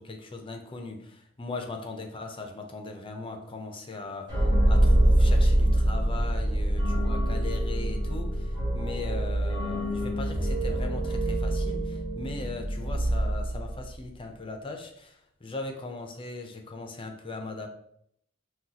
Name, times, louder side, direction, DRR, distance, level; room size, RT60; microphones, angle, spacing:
voice 1, 0.0-17.7, left 3 dB, 25° left, 4 dB, 0.6 m, -39 dB
sound 1, 4.3-14.0, right 1 dB, 20° right, 1.4 m, -25 dB
6.1 x 2.4 x 2.8 m, 0.70 s
head